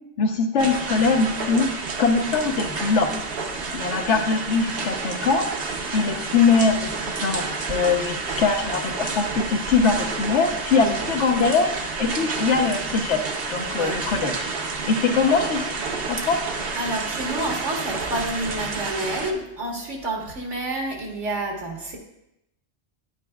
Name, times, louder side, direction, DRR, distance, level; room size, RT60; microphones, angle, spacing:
voice 1, 0.2-1.7 2.0-3.1 3.7-5.5 5.9-11.7 12.0-13.2 13.5-14.5 14.9-15.7 16.1-16.4, left 4 dB, 75° left, 5 dB, 1.2 m, -22 dB
sound 1, 0.6-19.3, right 4 dB, 55° right, 1.0 m, -30 dB
voice 2, 16.7-22.0, right 1 dB, 75° right, 0 dB, 1.9 m, -29 dB
9.9 x 9.4 x 2.3 m, 0.83 s
omnidirectional pair, 1.2 m